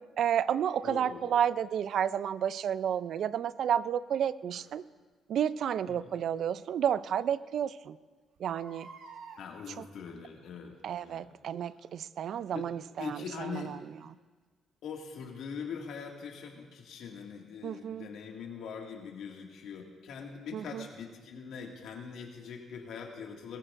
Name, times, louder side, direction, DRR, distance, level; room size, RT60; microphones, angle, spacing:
voice 1, 0.2-4.8 5.3-8.0 8.4-8.9 9.8-9.9 10.8-13.8 17.6-18.1 20.5-20.9, right 9 dB, 70° right, 17 dB, 0.4 m, -31 dB
voice 2, 0.8-1.4 5.9-6.0 9.4-10.7 11.0-11.3 12.5-12.7 13.0-13.7 14.8-23.6, left 6 dB, 80° left, 1 dB, 2.0 m, -42 dB
Crying sobbing, 1.9-2.0 4.5-4.7 6.3-6.4 6.9-7.0 7.2-7.3 8.4-9.4 10.4-10.7 11.3-11.4, right 4 dB, 85° right, 1.8 m, -50 dB
20.0 x 14.5 x 2.6 m, 1.4 s
cardioid pair, 90°, 0 cm